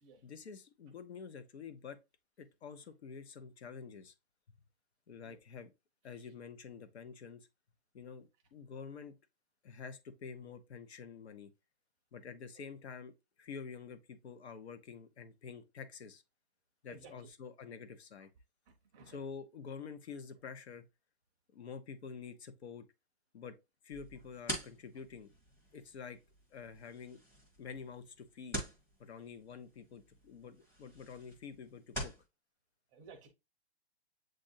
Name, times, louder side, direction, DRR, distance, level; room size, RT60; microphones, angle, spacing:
voice 1, 0.2-2.0 2.4-4.1 5.1-5.7 6.0-7.5 7.9-9.1 9.6-11.5 12.1-13.1 13.4-16.2 16.8-18.3 19.1-20.8 21.5-22.9 23.3-23.6 23.8-25.3 25.7-26.2 26.5-27.2 27.6-28.6 29.0-32.1, left 6 dB, 70° left, 0.9 m, -48 dB
voice 2, 18.7-19.2 24.9-25.0 32.9-33.3, right 4 dB, 15° right, 0.6 m, -56 dB
sound 1, 23.9-32.3, right 1 dB, 10° left, 0.9 m, -46 dB
7.7 x 2.6 x 2.6 m
hypercardioid pair, 160°, 34 cm